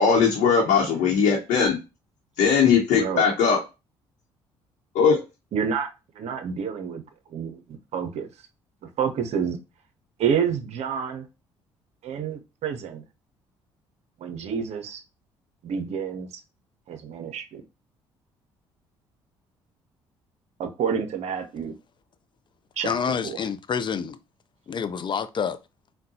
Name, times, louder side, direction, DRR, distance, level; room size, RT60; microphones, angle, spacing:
voice 1, 0.0-1.8 2.4-3.6 4.9-5.2, left 6 dB, 70° left, 0.8 m, -19 dB
voice 2, 2.9-3.2 5.5-7.0 7.3-7.6 7.9-8.3 8.8-9.6 10.2-11.3 12.0-13.0 14.2-15.0 15.6-16.4 16.9-17.6 20.6-21.7 22.8-23.4, right 7 dB, 60° right, 0.7 m, -29 dB
voice 3, 22.8-24.2 24.7-25.6, left 6 dB, 35° left, 0.4 m, -27 dB
3.6 x 2.2 x 2.7 m
hypercardioid pair, 55°, 13 cm